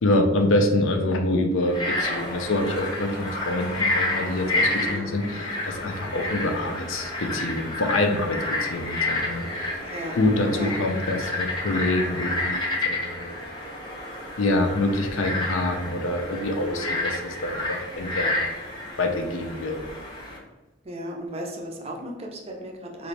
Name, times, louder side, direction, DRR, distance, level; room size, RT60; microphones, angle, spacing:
voice 1, 0.0-9.7 10.2-13.3 14.4-18.4 19.0-19.8, left 1 dB, 65° left, 4 dB, 0.5 m, -26 dB
Frog, 1.6-20.4, left 2 dB, 20° left, 0.7 m, -30 dB
voice 2, 4.8-5.2 9.8-10.2 10.5-10.7 20.8-23.1, equal, 30° right, 1 dB, 0.5 m, -35 dB
3.9 x 2.5 x 3.2 m, 1.2 s
head